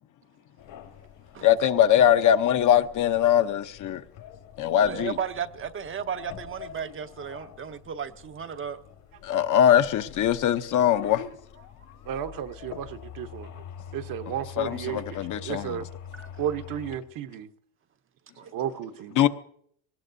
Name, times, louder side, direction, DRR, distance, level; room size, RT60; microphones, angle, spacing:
sound 1, 0.6-17.0, left 9 dB, 65° left, 1.9 m, -45 dB
voice 1, 1.4-4.0 4.6-5.2 9.2-11.2 14.6-15.8 19.2-19.3, left 10 dB, 50° left, 0.8 m, -21 dB
voice 2, 4.9-8.8 16.1-16.3 18.4-18.5, right 7 dB, 30° right, 0.7 m, -34 dB
voice 3, 12.1-13.5 13.9-15.0 15.4-15.9 16.4-17.5 18.5-19.3, right 10 dB, 55° right, 1.0 m, -33 dB
21.0 x 19.0 x 2.7 m
cardioid pair, 110°, 41 cm